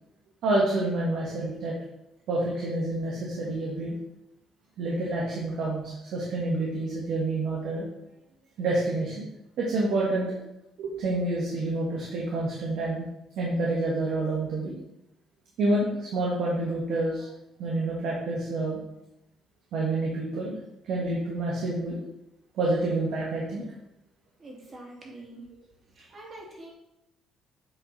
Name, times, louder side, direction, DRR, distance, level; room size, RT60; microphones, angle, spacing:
voice 1, 0.4-1.7 2.3-4.0 4.8-7.9 8.6-9.3 9.6-10.4 10.8-13.0 13.4-14.8 15.6-17.3 17.6-18.8 19.7-20.6 20.8-22.0 22.5-23.6, right 2 dB, 75° right, -4 dB, 1.6 m, -28 dB
voice 2, 24.4-25.4 26.1-26.7, right 2 dB, 40° right, -3 dB, 2.6 m, -44 dB
7.8 x 4.0 x 4.2 m, 0.86 s
cardioid pair, 100°, 0 cm